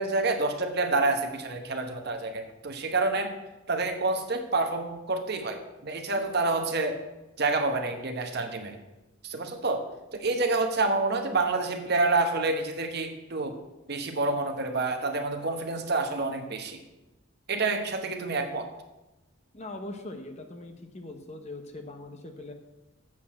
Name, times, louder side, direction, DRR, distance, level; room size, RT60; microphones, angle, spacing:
voice 1, 0.0-3.3 3.7-7.0 7.4-8.8 9.2-9.9 10.1-13.6 13.9-16.8 17.5-18.7, right 3 dB, 50° right, 5 dB, 1.0 m, -28 dB
voice 2, 19.5-22.5, left 2 dB, 30° left, 5 dB, 0.9 m, -41 dB
7.4 x 6.7 x 7.5 m, 1.0 s
head